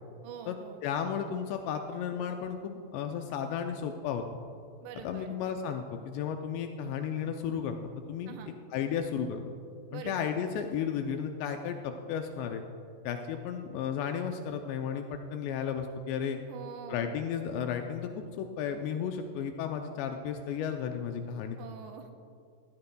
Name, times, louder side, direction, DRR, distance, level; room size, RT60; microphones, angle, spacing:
voice 1, 0.2-0.8 4.8-5.4 8.3-8.5 9.9-10.3 16.5-17.1 21.6-22.1, right 7 dB, 80° right, 5 dB, 2.8 m, -45 dB
voice 2, 0.8-4.2 5.0-7.8 8.1-8.4 8.7-9.4 9.9-12.6 13.0-16.4 16.9-18.1 18.4-21.6, left 7 dB, 85° left, 5 dB, 2.5 m, -33 dB
16.5 x 14.5 x 2.2 m, 2.4 s
omnidirectional pair, 5.4 m